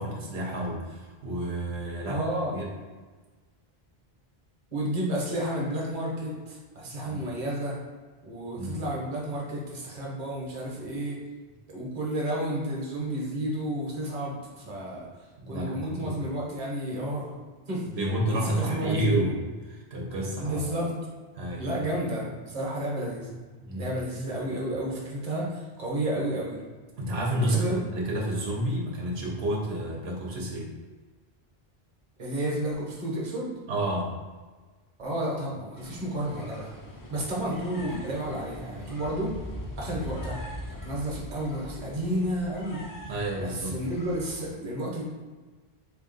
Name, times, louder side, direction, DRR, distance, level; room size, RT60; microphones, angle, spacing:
voice 1, 0.0-2.2 2.5-2.7 7.0-7.2 8.6-8.8 15.4-16.2 17.9-19.4 19.7-20.6 21.4-21.8 23.6-23.9 27.0-30.7 33.7-34.1 43.1-43.8, right 1 dB, 85° right, -2 dB, 1.0 m, -30 dB
voice 2, 2.1-2.6 4.7-7.8 8.2-11.2 11.7-15.1 15.5-17.4 17.7-17.8 18.3-19.3 20.4-20.9 21.6-23.4 23.7-26.6 27.4-27.8 32.2-33.5 35.0-36.7 37.1-39.3 39.7-40.4 40.8-42.8 43.4-45.0, right 1 dB, 45° right, -3 dB, 1.0 m, -31 dB
sound 1, 35.8-44.5, left 1 dB, 25° left, 0.5 m, -41 dB
3.6 x 2.8 x 3.9 m, 1.3 s
omnidirectional pair, 1.0 m